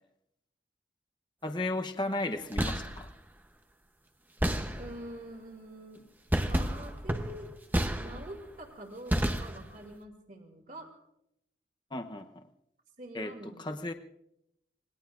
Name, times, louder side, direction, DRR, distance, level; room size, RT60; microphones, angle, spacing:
voice 1, 1.4-3.1 11.9-12.4 13.1-13.9, left 2 dB, 25° left, 6 dB, 0.8 m, -35 dB
sound 1, 2.4-3.1 4.4-5.2 6.3-8.5 9.1-9.9, equal, 10° right, 0.9 m, -31 dB
voice 2, 4.8-6.0 6.4-7.5 8.0-10.9 13.0-13.9, right 1 dB, 45° right, 3 dB, 2.6 m, -46 dB
26.5 x 21.0 x 2.6 m, 0.81 s
head